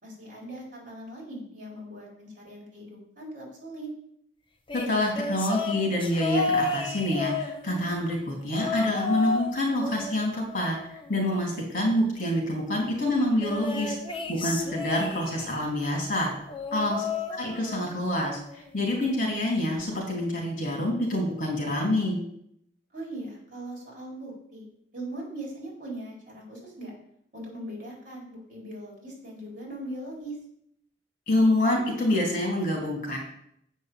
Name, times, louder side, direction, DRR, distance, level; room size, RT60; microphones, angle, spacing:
voice 1, 0.0-3.9 16.9-17.2 22.9-24.7 24.9-26.9 27.3-30.4, right 1 dB, 50° right, -3 dB, 4.3 m, -40 dB
voice 2, 4.7-14.0 14.3-16.3 16.7-22.2 31.3-33.2, left 1 dB, 50° left, 0 dB, 3.2 m, -27 dB
sound 1, 4.7-8.0 8.5-9.5 9.8-11.4 13.4-15.6 16.5-18.0 18.3-18.7 19.8-19.9, left 3 dB, 30° left, 1.0 m, -32 dB
8.3 x 5.4 x 7.5 m, 0.73 s
head